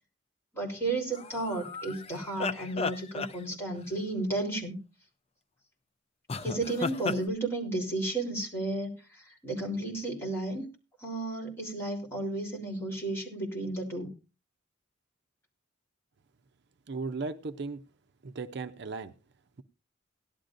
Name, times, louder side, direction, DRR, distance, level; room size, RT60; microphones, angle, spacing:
voice 1, 0.5-4.8 6.4-10.7 11.0-14.1, right 2 dB, 15° left, -2 dB, 3.4 m, -33 dB
sound 1, 1.1-3.9 6.3-7.2, left 4 dB, 30° left, 0.5 m, -35 dB
voice 2, 16.9-17.8 18.2-19.1, right 3 dB, 60° right, 8 dB, 0.6 m, -36 dB
17.5 x 11.5 x 2.6 m, 0.31 s
head